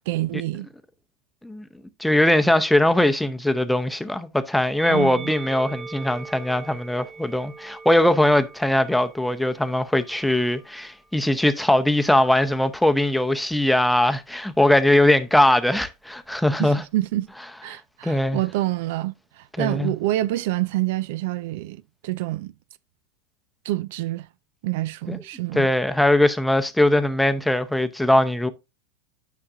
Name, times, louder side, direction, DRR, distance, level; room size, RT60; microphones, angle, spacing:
voice 1, 0.1-0.7 4.9-5.3 16.6-17.3 17.6-22.5 23.6-24.3 24.6-25.7, right 16 dB, 65° right, 0.3 m, -27 dB
voice 2, 2.0-16.8 18.0-18.4 19.6-19.9 25.1-25.2 25.5-28.5, left 1 dB, 5° left, 0.7 m, -20 dB
Musical instrument, 4.8-11.2 12.0-13.0, right 4 dB, 20° right, 1.7 m, -42 dB
9.8 x 5.8 x 2.4 m
hypercardioid pair, 95°, 0 cm